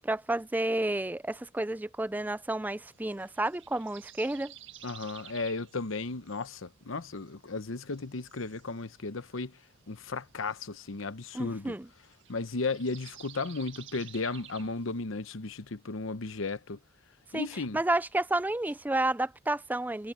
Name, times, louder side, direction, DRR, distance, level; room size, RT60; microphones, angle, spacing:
voice 1, 0.0-4.5 11.3-11.9 17.3-17.5 17.7-20.1, right 2 dB, 10° right, 0.3 m, -30 dB
sound 1, 2.6-15.0, right 11 dB, 60° right, 2.0 m, -54 dB
voice 2, 4.8-9.6 9.9-11.8 12.3-16.8 17.3-17.8, left 3 dB, 75° left, 0.9 m, -35 dB
head